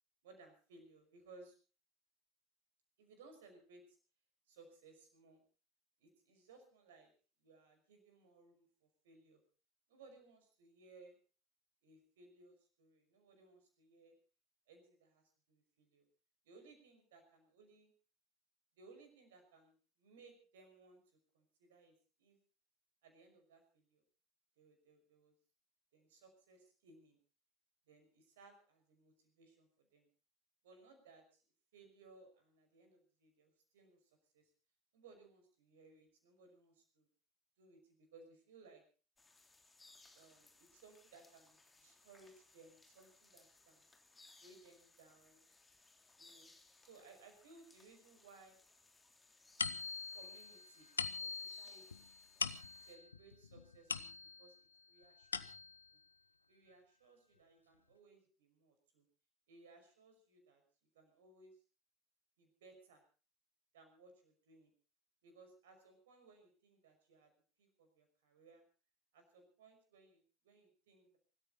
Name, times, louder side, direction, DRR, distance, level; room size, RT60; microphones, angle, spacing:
voice 1, 0.2-1.6 3.0-4.0 4.5-5.4 6.0-7.1 7.4-9.4 9.9-11.2 11.8-14.1 14.7-16.0 16.4-17.9 18.8-22.4 23.0-24.0 24.6-25.3 25.9-27.2 27.9-30.1 30.6-31.4 31.7-34.5 34.9-37.1 37.6-38.8 40.1-43.8 44.4-45.4 46.2-46.5 46.8-48.6 50.1-50.9 51.2-52.1 52.8-55.5 55.9-56.0 56.5-59.0 59.5-60.6 60.9-61.6 62.4-63.0 63.7-64.7 65.2-67.3 67.6-68.6 69.1-71.2, right 3 dB, 65° right, 5 dB, 5.8 m, -63 dB
sound 1, 39.2-53.0, left 3 dB, 15° left, 3.2 m, -66 dB
sound 2, 49.6-54.6 55.0-55.9, left 5 dB, 80° left, 0.7 m, -43 dB
24.5 x 14.0 x 4.0 m, 0.36 s
figure-of-eight pair, 65°, 0 cm